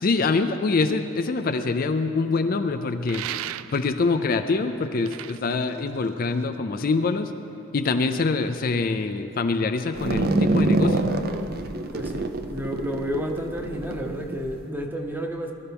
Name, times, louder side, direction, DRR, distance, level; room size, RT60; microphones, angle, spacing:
voice 1, 0.0-3.2 3.7-7.3 7.7-11.1, left 3 dB, 45° left, 8 dB, 0.4 m, -24 dB
sound 1, 3.1-4.1 4.8-6.5, right 12 dB, 85° right, 0.3 m, -36 dB
sound 2, 9.9-14.6, right 2 dB, 45° right, 0.6 m, -25 dB
voice 2, 11.9-15.5, equal, 10° right, 3 dB, 0.9 m, -31 dB
21.5 x 12.0 x 3.5 m, 2.8 s
head